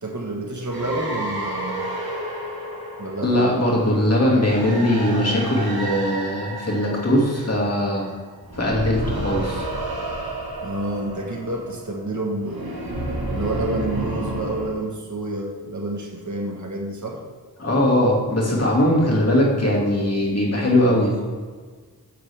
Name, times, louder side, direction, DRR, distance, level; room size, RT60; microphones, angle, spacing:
voice 1, 0.0-1.8 3.0-3.6 10.6-12.8 13.3-17.2, right 2 dB, 50° right, 0 dB, 1.5 m, -29 dB
sound 1, 0.7-8.1 8.4-14.7, right 1 dB, 70° right, 1.7 m, -31 dB
voice 2, 3.2-8.0 8.5-9.7 17.6-21.2, left 1 dB, 40° left, -3 dB, 2.3 m, -20 dB
9.2 x 7.0 x 3.5 m, 1.5 s
wide cardioid pair, 65°, 38 cm